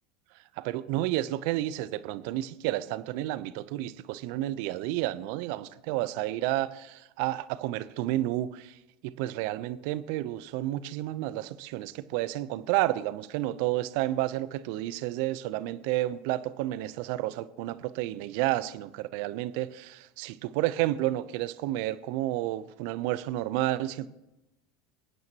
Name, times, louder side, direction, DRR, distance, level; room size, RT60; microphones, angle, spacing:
voice 1, 0.6-8.7 9.0-24.1, right 15 dB, 65° right, 0.6 m, -31 dB
27.5 x 9.3 x 3.0 m
hypercardioid pair, 85°, 0 cm